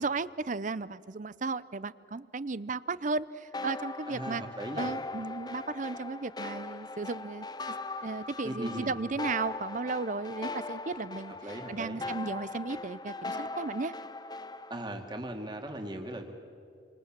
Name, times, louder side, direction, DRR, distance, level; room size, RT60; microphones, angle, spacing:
voice 1, 0.0-4.4 4.8-7.5 8.0-13.9, right 3 dB, 45° right, 17 dB, 0.6 m, -35 dB
sound 1, 3.5-14.8, left 3 dB, 25° left, 0.8 m, -40 dB
voice 2, 4.1-4.9 8.4-8.9 11.4-12.0 14.7-16.3, right 1 dB, 25° right, 4 dB, 2.4 m, -38 dB
28.5 x 25.5 x 7.5 m, 2.4 s
head